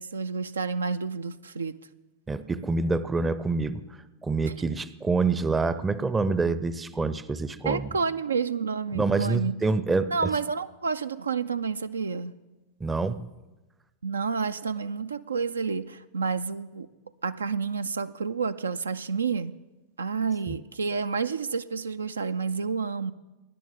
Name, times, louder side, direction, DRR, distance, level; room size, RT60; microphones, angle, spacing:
voice 1, 0.0-1.8 4.4-4.5 7.6-9.6 10.1-12.3 14.0-16.9 17.2-19.6 20.0-23.1, right 5 dB, 75° right, 11 dB, 0.3 m, -29 dB
voice 2, 2.3-3.8 4.2-7.9 8.9-10.1 12.8-13.3 20.5-20.6, right 3 dB, 15° right, 15 dB, 0.5 m, -26 dB
19.0 x 10.5 x 3.6 m, 1.1 s
figure-of-eight pair, 90°, 0 cm